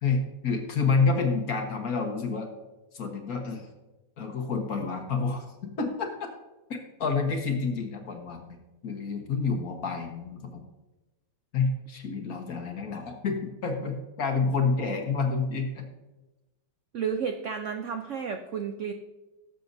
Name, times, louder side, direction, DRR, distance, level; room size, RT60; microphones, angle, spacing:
voice 1, 0.0-2.5 2.9-3.7 4.2-6.1 7.0-8.6 8.8-10.6 11.5-15.9, left 4 dB, 50° left, 3 dB, 1.7 m, -28 dB
voice 2, 16.9-18.9, right 6 dB, 75° right, 6 dB, 0.6 m, -32 dB
18.0 x 7.6 x 2.7 m, 1.1 s
omnidirectional pair, 2.1 m